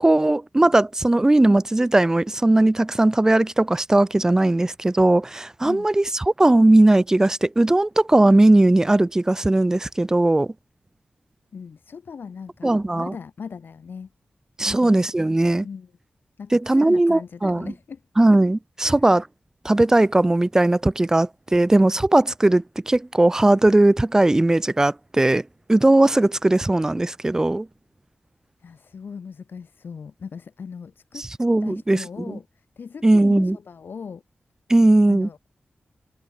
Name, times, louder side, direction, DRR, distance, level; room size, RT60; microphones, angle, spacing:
voice 1, 0.0-10.5 12.6-13.1 14.6-15.7 16.5-17.7 18.2-19.2 19.6-27.7 31.2-32.4 33.0-33.6 34.7-35.3, right 2 dB, 15° right, 0.5 m, -18 dB
voice 2, 11.5-14.1 14.6-14.9 15.6-15.9 16.4-18.0 18.8-19.0 28.6-31.3 31.6-32.5 32.8-34.2 35.1-35.4, left 6 dB, 80° left, 0.9 m, -38 dB
wide cardioid pair, 130°, 4 cm